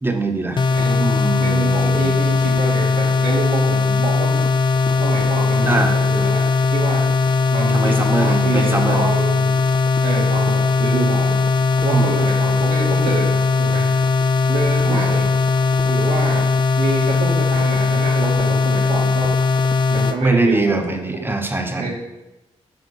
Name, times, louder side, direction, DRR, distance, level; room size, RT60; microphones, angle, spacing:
voice 1, 0.0-0.6 1.0-2.1 5.7-6.0 7.7-9.0 11.9-12.1 14.9-15.2 20.2-21.9, right 2 dB, 20° right, 4 dB, 1.1 m, -22 dB
sound 1, 0.6-20.2, left 4 dB, 40° left, 0.5 m, -18 dB
voice 2, 0.7-4.4 5.0-7.1 7.5-9.5 10.0-11.5 11.8-13.9 14.5-15.3 15.9-19.3 19.9-21.3 21.8-21.9, right 3 dB, 85° right, -1 dB, 1.9 m, -26 dB
6.9 x 5.8 x 4.8 m, 0.99 s
cardioid pair, 75°, 12 cm